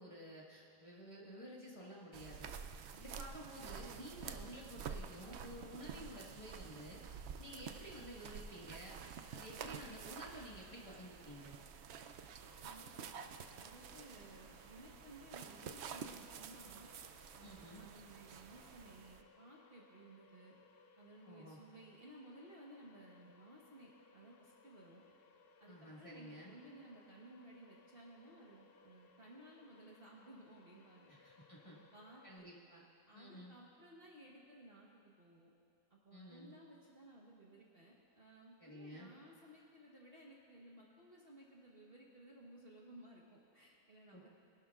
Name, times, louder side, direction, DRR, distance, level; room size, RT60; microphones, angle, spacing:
voice 1, 0.0-2.5 2.9-7.0 7.4-9.0 9.3-11.6 17.4-17.8 21.2-21.6 25.7-26.5 31.1-31.8 32.2-32.8 33.1-33.6 36.1-36.5 38.6-39.1 44.1-44.3, equal, 20° left, -5 dB, 1.6 m, -52 dB
sound 1, 2.1-19.2, right 6 dB, 75° right, 0.6 m, -50 dB
sound 2, 12.4-32.4, left 4 dB, 60° left, 0.6 m, -67 dB
voice 2, 12.6-13.1 13.6-16.9 17.3-20.6 21.0-25.0 25.6-32.4 33.1-35.5 35.9-44.3, right 1 dB, 40° right, -3 dB, 1.3 m, -58 dB
22.0 x 12.0 x 2.4 m, 2.4 s
omnidirectional pair, 1.7 m